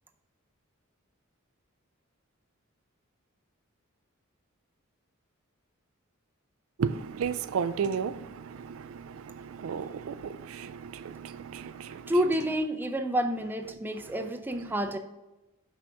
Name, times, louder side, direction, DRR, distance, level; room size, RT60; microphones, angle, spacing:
voice 1, 6.8-12.1 14.0-14.3, right 6 dB, 70° right, 12 dB, 0.4 m, -34 dB
voice 2, 12.1-15.0, equal, 10° right, 6 dB, 0.5 m, -29 dB
6.1 x 5.8 x 3.4 m, 1.0 s
head